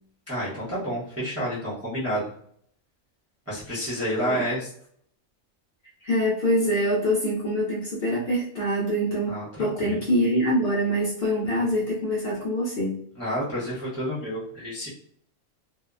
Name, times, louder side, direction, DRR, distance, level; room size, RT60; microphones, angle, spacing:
voice 1, 0.3-2.3 3.5-4.7 9.3-10.0 13.1-14.9, equal, 15° right, -8 dB, 0.6 m, -29 dB
voice 2, 6.0-13.0, equal, 55° left, -5 dB, 0.7 m, -25 dB
2.7 x 2.0 x 2.3 m, 0.63 s
omnidirectional pair, 1.5 m